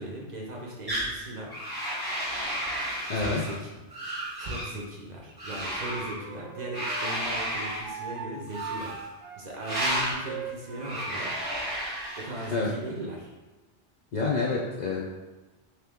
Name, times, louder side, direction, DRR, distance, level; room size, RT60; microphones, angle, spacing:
voice 1, 0.0-1.5 3.1-3.8 4.4-9.0 9.4-11.3 12.2-13.3, right 1 dB, 50° right, -2 dB, 0.6 m, -38 dB
sound 1, 0.9-1.1 1.5-3.6 3.9-4.7 5.4-6.2 6.7-7.9 8.5-9.1 9.6-10.2 10.8-12.6, equal, 25° right, 0.8 m, -32 dB
voice 2, 3.1-3.4 12.5-12.7 14.1-15.1, left 4 dB, 60° left, -4 dB, 0.5 m, -28 dB
Wind instrument woodwind instrument, 5.8-11.3, right 6 dB, 75° right, 0.9 m, -40 dB
3.1 x 2.9 x 3.5 m, 1.2 s
omnidirectional pair, 1.2 m